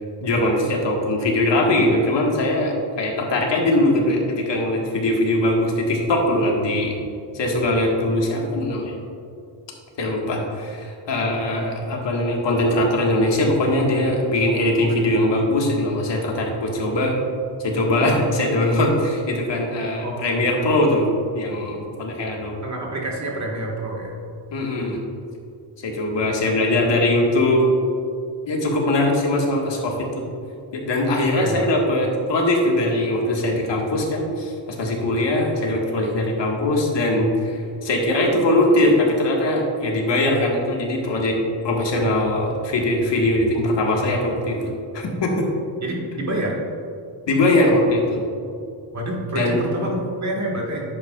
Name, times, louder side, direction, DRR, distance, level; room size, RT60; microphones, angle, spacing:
voice 1, 0.2-7.0 7.3-8.9 10.0-17.2 17.6-21.1 21.3-22.5 24.5-25.0 25.8-27.6 28.5-30.2 30.7-41.4 41.6-45.5 47.3-48.2 49.3-49.9, left 1 dB, 65° left, -1 dB, 1.6 m, -21 dB
voice 2, 20.0-20.5 22.6-24.2 31.3-31.6 45.8-46.6 48.9-50.8, right 1 dB, 35° right, -1 dB, 1.7 m, -28 dB
10.5 x 8.1 x 2.4 m, 2.5 s
wide cardioid pair, 125°, 47 cm